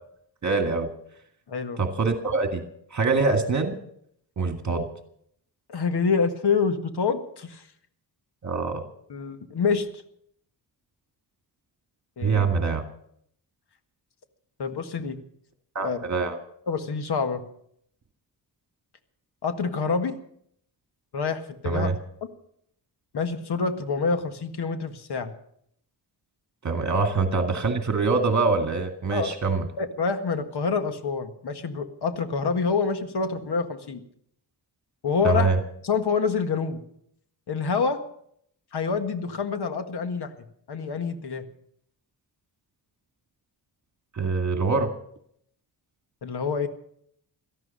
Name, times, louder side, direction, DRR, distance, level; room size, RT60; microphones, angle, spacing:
voice 1, 0.4-0.9 1.8-2.6 2.9-3.7 4.4-4.9 8.4-8.8 12.2-12.8 15.8-16.4 21.6-22.0 26.6-29.7 35.2-35.6 44.1-44.9, right 4 dB, 45° right, 5 dB, 2.0 m, -24 dB
voice 2, 1.5-1.8 5.7-7.6 9.1-9.9 12.2-12.4 14.6-15.2 15.8-16.0 16.7-17.4 19.4-20.2 21.1-21.9 23.1-25.3 27.0-27.1 29.1-29.3 29.8-34.0 35.0-35.5 35.8-36.8 37.5-38.0 38.7-40.3 40.7-41.4 46.2-46.7, left 5 dB, 65° left, 8 dB, 1.8 m, -27 dB
18.0 x 13.5 x 5.5 m, 0.67 s
wide cardioid pair, 115°, 42 cm